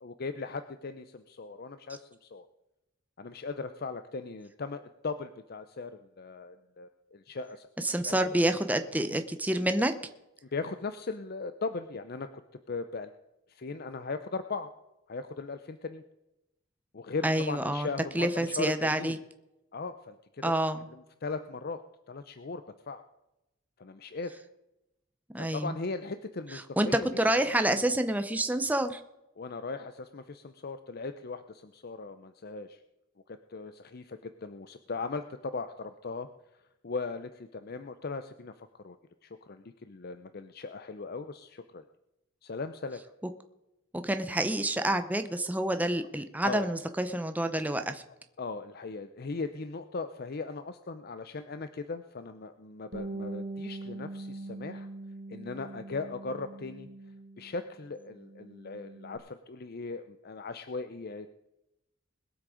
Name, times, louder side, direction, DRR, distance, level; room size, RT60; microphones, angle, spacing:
voice 1, 0.0-2.4 3.2-5.9 6.2-7.7 8.0-8.6 10.4-12.3 12.7-13.1 13.5-14.7 15.1-16.0 16.9-19.2 19.7-20.5 20.9-21.8 22.1-23.0 23.8-24.3 25.4-27.1 27.4-27.5 29.4-32.8 33.3-36.3 36.8-39.0 39.2-41.8 42.4-43.0 46.4-46.7 48.4-54.9 55.3-56.9 57.4-61.3, left 4 dB, 50° left, 10 dB, 0.6 m, -38 dB
voice 2, 7.8-9.9 17.2-17.9 18.1-19.2 20.4-20.8 25.3-25.7 26.8-26.9 27.2-29.0 44.0-48.0, right 1 dB, 10° right, 8 dB, 0.7 m, -28 dB
Bass guitar, 52.9-57.6 58.0-59.2, right 2 dB, 60° right, 1.6 m, -42 dB
21.0 x 7.6 x 5.0 m, 0.92 s
head